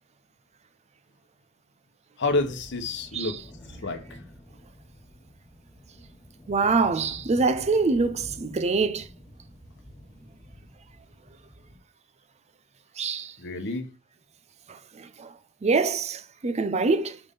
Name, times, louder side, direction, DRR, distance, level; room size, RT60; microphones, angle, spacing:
voice 1, 2.2-3.4 3.7-4.2 13.4-13.9, left 3 dB, 60° left, 0.9 m, -29 dB
sound 1, 2.3-11.8, equal, 20° left, 2.0 m, -48 dB
voice 2, 6.5-9.1 13.0-13.3 14.7-15.3 15.6-17.2, right 4 dB, 30° right, 0.5 m, -25 dB
5.0 x 3.6 x 5.4 m
head